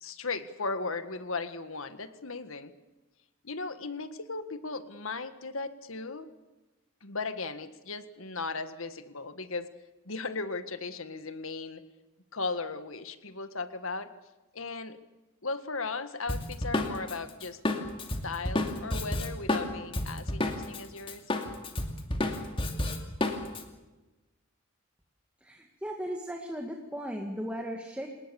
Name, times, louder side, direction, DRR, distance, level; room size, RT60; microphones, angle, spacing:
voice 1, 0.0-2.7 3.4-6.3 7.0-9.7 10.1-11.8 12.3-14.1 14.5-15.0 15.4-17.6 18.2-21.2, left 3 dB, 70° left, 11 dB, 1.8 m, -36 dB
Drum kit, 16.3-20.8 21.1-23.6, left 1 dB, 25° left, 2.6 m, -30 dB
voice 2, 25.4-28.1, equal, 5° right, 2 dB, 2.1 m, -36 dB
29.5 x 19.5 x 7.1 m, 1.1 s
head